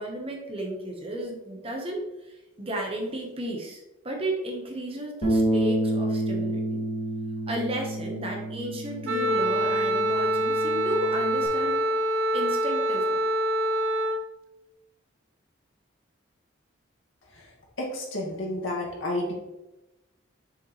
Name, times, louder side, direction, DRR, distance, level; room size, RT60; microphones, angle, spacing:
voice 1, 0.0-6.9 7.5-11.9 12.3-13.2, right 1 dB, 30° right, 1 dB, 1.2 m, -34 dB
Bass guitar, 5.2-11.5, right 1 dB, 50° left, 2.1 m, -29 dB
Wind instrument woodwind instrument, 9.0-14.2, equal, 80° right, 0.7 m, -25 dB
voice 2, 17.8-19.3, left 1 dB, 80° left, -2 dB, 2.1 m, -30 dB
6.7 x 5.6 x 3.2 m, 0.99 s
head